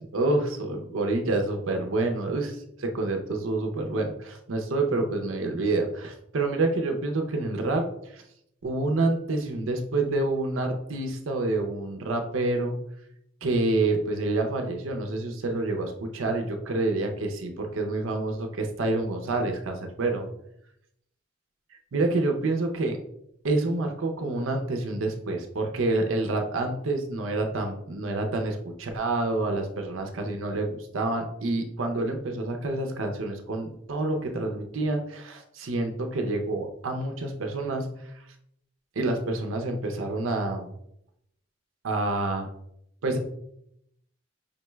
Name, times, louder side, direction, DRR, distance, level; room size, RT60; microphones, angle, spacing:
voice 1, 0.1-7.9 8.1-8.2 8.6-12.8 13.4-20.3 21.9-23.0 23.4-38.0 39.0-40.7 41.8-42.5 43.0-43.2, right 2 dB, 80° right, 4 dB, 0.6 m, -28 dB
5.1 x 2.2 x 3.1 m, 0.76 s
head